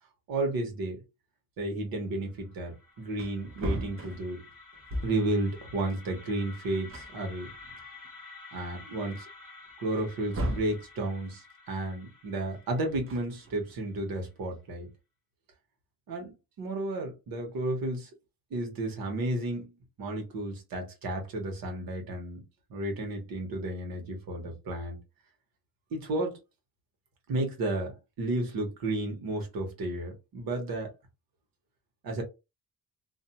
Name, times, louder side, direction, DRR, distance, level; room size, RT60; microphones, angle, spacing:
voice 1, 0.3-1.0 1.6-4.4 5.0-7.5 8.5-9.3 9.8-14.9 16.1-18.1 18.5-19.7 20.0-22.4 22.7-25.0 25.9-26.4 27.3-30.9 32.0-32.2, right 2 dB, 85° right, 1.2 m, -32 dB
sound 1, 2.3-14.2, left 4 dB, 5° right, 1.0 m, -51 dB
Wood, 2.7-2.8 3.1-5.4 6.5-6.6 6.9-8.1 8.6-8.7 9.9-10.8 12.9-13.8, right 1 dB, 40° right, 0.7 m, -36 dB
2.6 x 2.2 x 2.8 m
cardioid pair, 175°, 34 cm